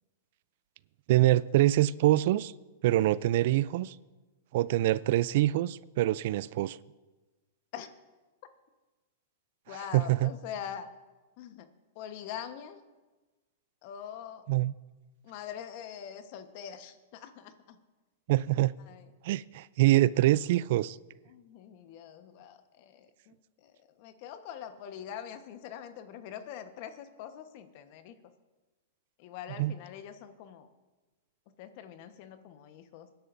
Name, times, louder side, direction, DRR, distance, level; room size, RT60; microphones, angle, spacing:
voice 1, 1.1-2.5 2.8-4.0 4.5-6.8 9.9-10.3 14.5-14.7 18.3-18.7 19.2-21.0 29.6-29.7, right 15 dB, 60° right, 0.3 m, -25 dB
voice 2, 9.7-10.9 11.4-11.7 11.9-12.8 13.8-14.5 15.2-17.8 18.9-19.1 21.3-28.1 29.2-30.7 31.6-33.1, left 9 dB, 50° left, 1.1 m, -44 dB
24.0 x 10.5 x 2.6 m
hypercardioid pair, 125°, 0 cm